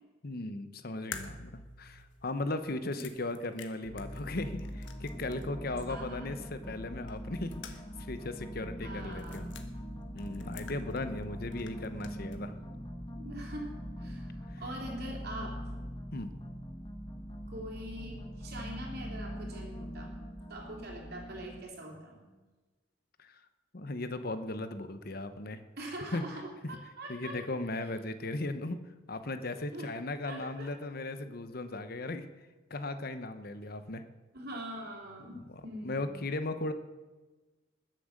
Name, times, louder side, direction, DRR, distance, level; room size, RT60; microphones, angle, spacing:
voice 1, 0.2-1.5 1.8-7.5 8.0-9.4 10.1-12.5 14.5-14.6 16.1-16.3 23.2-23.3 23.7-25.6 26.1-26.2 27.1-28.8 29.1-32.2 32.7-34.0 35.3-36.7, left 2 dB, 50° left, 10 dB, 1.0 m, -37 dB
sound 1, 1.1-5.6 5.8-5.9 7.1-8.1 8.3-8.4 9.1-9.7 10.2-11.3 11.5-12.4, left 6 dB, 70° left, 1.4 m, -48 dB
sound 2, 3.8-21.6, equal, 25° left, 1.3 m, -42 dB
voice 2, 5.8-6.3 8.8-9.6 13.2-15.6 17.5-20.1 20.5-22.3 25.8-27.4 29.7-29.9 30.2-30.8 31.7-31.9 34.3-36.1, right 1 dB, 55° right, 0 dB, 3.6 m, -43 dB
20.5 x 7.6 x 6.6 m, 1.2 s
head